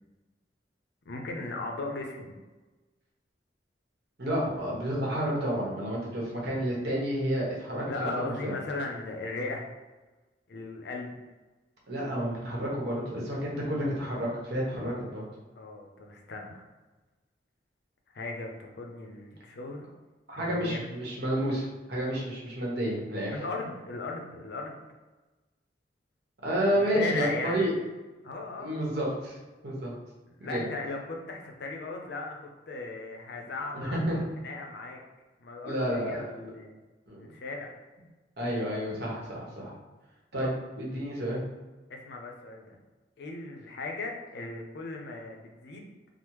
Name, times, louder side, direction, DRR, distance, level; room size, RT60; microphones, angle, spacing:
voice 1, 1.1-2.3 7.8-9.6 10.5-11.1 15.6-16.6 18.1-19.8 20.3-20.9 23.3-24.8 26.7-27.6 28.2-28.8 30.4-32.4 32.7-35.0 35.4-36.8 37.2-37.7 40.4-40.6 41.9-42.8 43.2-45.9, left 3 dB, 65° left, 1 dB, 0.5 m, -37 dB
voice 2, 4.2-8.1 8.4-8.5 11.9-15.2 20.3-23.3 26.4-27.7 28.6-29.4 29.6-29.9 30.4-30.7 33.7-34.3 35.6-36.3 37.1-37.3 38.4-39.7 40.3-40.5 40.8-41.4, equal, 65° right, -4 dB, 1.0 m, -30 dB
3.4 x 2.0 x 3.0 m, 1.2 s
head